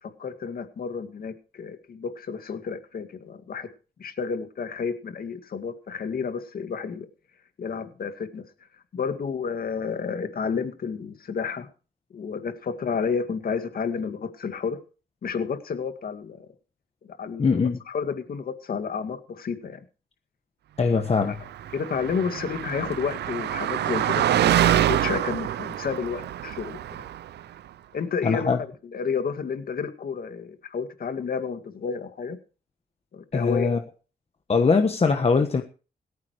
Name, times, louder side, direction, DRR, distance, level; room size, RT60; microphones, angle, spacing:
voice 1, 0.0-3.7 4.0-7.1 7.6-8.4 8.9-11.7 12.1-14.8 15.2-16.5 17.2-17.6 17.9-19.8 20.9-21.3 21.7-26.8 27.9-32.4 33.1-33.7, left 6 dB, 60° left, 8 dB, 2.1 m, -31 dB
voice 2, 17.4-17.8 20.8-21.4 28.2-28.6 33.3-33.8 34.5-35.6, left 4 dB, 35° left, 6 dB, 1.4 m, -21 dB
Car passing by, 21.4-27.4, right 11 dB, 80° right, 0.6 m, -25 dB
17.5 x 14.5 x 3.2 m, 0.35 s
cardioid pair, 90°, 17 cm